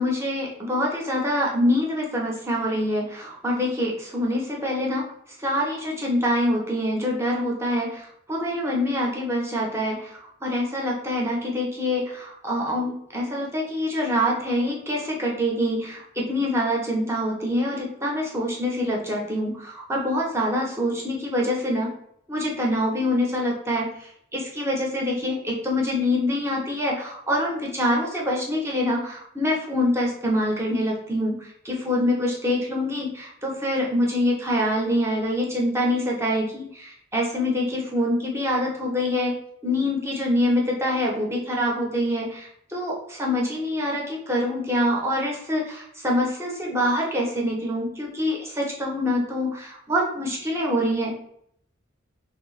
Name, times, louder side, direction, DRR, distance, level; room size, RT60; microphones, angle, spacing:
voice 1, 0.0-5.0 5.4-21.9 22.3-39.3 39.6-51.2, left 1 dB, 15° right, -3 dB, 0.8 m, -25 dB
3.3 x 2.7 x 3.1 m, 0.70 s
head